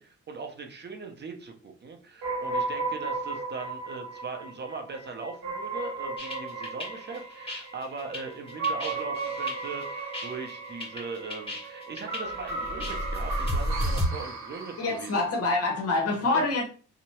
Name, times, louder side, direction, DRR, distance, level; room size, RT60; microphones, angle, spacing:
voice 1, 0.0-15.3 16.3-16.5, right 4 dB, 35° right, 3 dB, 0.6 m, -40 dB
sound 1, 2.2-15.3, right 3 dB, 70° right, 1.1 m, -35 dB
sound 2, 6.2-14.1, equal, 15° left, 1.4 m, -33 dB
voice 2, 14.8-16.7, left 2 dB, 50° left, 1 dB, 0.9 m, -26 dB
2.8 x 2.0 x 3.0 m, 0.39 s
cardioid pair, 90°, 30 cm